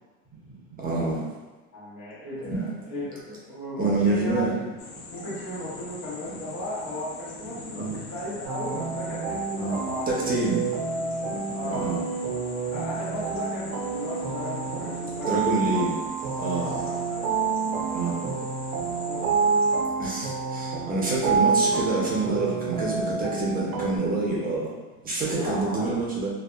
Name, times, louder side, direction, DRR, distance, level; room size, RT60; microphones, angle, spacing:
voice 1, 0.8-1.2 2.4-2.6 3.8-4.5 7.7-8.0 9.6-9.8 10.1-10.6 11.6-12.0 15.3-15.9 16.4-16.7 17.9-18.2 20.0-24.7 25.0-26.3, right 3 dB, 20° right, -4 dB, 0.6 m, -27 dB
voice 2, 1.7-4.7 5.1-10.1 11.5-11.8 12.7-15.9 16.5-17.6 18.2-18.4 19.0-19.2 19.6-19.7 25.4-26.0, left 1 dB, 60° left, -9 dB, 1.1 m, -36 dB
sound 1, 4.8-19.8, left 4 dB, 85° left, 0.6 m, -42 dB
sound 2, 8.4-24.0, right 5 dB, 75° right, 0.6 m, -28 dB
2.6 x 2.2 x 2.3 m, 1.2 s
supercardioid pair, 105°, 43 cm